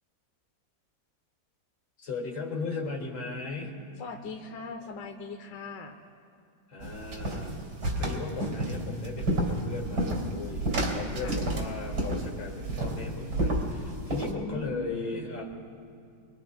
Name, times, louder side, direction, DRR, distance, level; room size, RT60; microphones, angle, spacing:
voice 1, 2.0-3.7 6.7-7.5 8.0-15.4, left 4 dB, 90° left, 0 dB, 3.0 m, -37 dB
voice 2, 4.0-6.0 11.2-11.4 14.2-15.4, left 3 dB, 70° left, 4 dB, 1.5 m, -40 dB
sound 1, 6.8-14.3, right 1 dB, 80° right, 3.5 m, -31 dB
25.0 x 24.5 x 2.2 m, 2.3 s
omnidirectional pair, 2.0 m